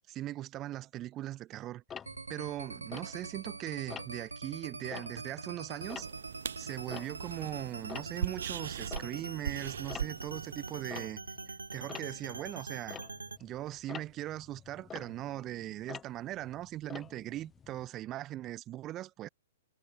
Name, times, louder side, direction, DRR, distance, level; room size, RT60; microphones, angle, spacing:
voice 1, 0.1-1.8 2.3-6.1 6.6-11.2 11.7-13.0 13.4-19.3, right 14 dB, 30° right, 1.5 m, -40 dB
Tick-tock, 1.9-3.5 3.9-4.3 4.8-7.5 7.7-17.9, left 7 dB, 15° left, 5.3 m, -48 dB
sound 1, 2.1-13.4, right 4 dB, 80° right, 1.1 m, -44 dB
sound 2, 5.8-11.0, right 9 dB, 60° right, 1.9 m, -41 dB
figure-of-eight pair, 110°, 0 cm